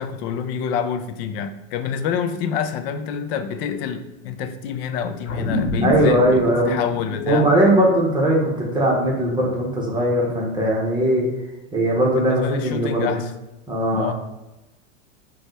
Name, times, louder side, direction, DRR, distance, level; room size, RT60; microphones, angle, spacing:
voice 1, 0.0-7.5 12.2-13.3 13.9-14.1, left 7 dB, 50° left, 10 dB, 0.5 m, -27 dB
sound 1, 5.3-10.0, left 2 dB, 80° left, 1.0 m, -29 dB
voice 2, 5.8-6.7 7.3-11.3 11.7-13.2 13.7-14.1, right 1 dB, 10° right, -3 dB, 1.0 m, -19 dB
5.3 x 2.4 x 3.1 m, 1.0 s
supercardioid pair, 125°, 40 cm